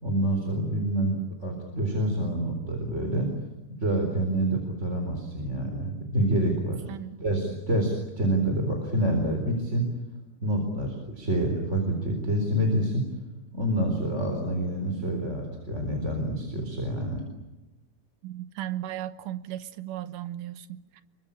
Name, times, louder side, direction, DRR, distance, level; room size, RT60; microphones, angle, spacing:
voice 1, 0.0-3.3 3.8-6.8 7.2-9.9 10.4-13.1 13.5-17.2, right 1 dB, 20° right, 3.9 m, -27 dB
voice 2, 18.2-21.0, right 12 dB, 70° right, 2.4 m, -36 dB
28.0 x 23.5 x 8.7 m
omnidirectional pair, 4.4 m